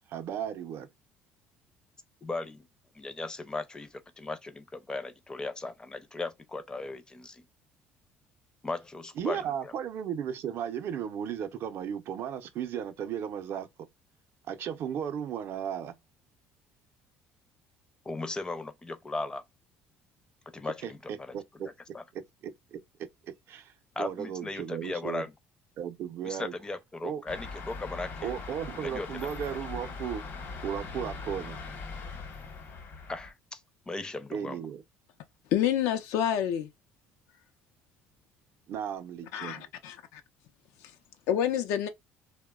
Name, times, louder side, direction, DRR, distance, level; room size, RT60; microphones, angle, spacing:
voice 1, 0.1-0.9 9.2-13.7 14.5-16.0 20.8-21.7 22.1-25.2 25.8-26.5 27.0-27.2 28.2-30.3 30.6-31.6 34.3-34.8 38.7-39.6, right 8 dB, 60° right, 0.5 m, -35 dB
voice 2, 2.2-2.7 2.9-7.4 8.6-9.7 18.0-19.4 20.5-21.4 21.9-22.0 24.0-25.3 26.2-28.3 28.8-29.3 33.1-33.6 33.9-34.6, left 3 dB, 15° left, 0.5 m, -37 dB
sound 1, 27.3-33.3, left 4 dB, 55° left, 1.0 m, -41 dB
voice 3, 35.5-36.7 39.3-40.0 41.3-41.9, left 10 dB, 80° left, 0.5 m, -27 dB
2.8 x 2.1 x 2.2 m
cardioid pair, 100°, 5 cm